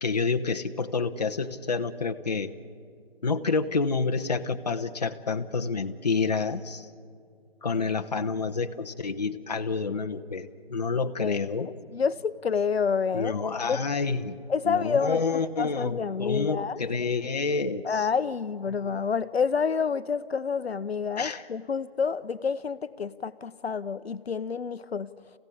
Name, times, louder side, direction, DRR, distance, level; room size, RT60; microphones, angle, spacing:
voice 1, 0.0-2.5 3.2-6.9 7.6-11.7 13.1-14.4 14.6-18.1 18.7-18.8 21.2-21.4, left 4 dB, 40° left, 5 dB, 0.9 m, -28 dB
voice 2, 11.2-13.8 14.5-15.2 15.6-16.8 17.8-25.1, left 6 dB, 85° left, 14 dB, 0.8 m, -28 dB
26.5 x 16.0 x 8.5 m, 2.2 s
hypercardioid pair, 175°, 31 cm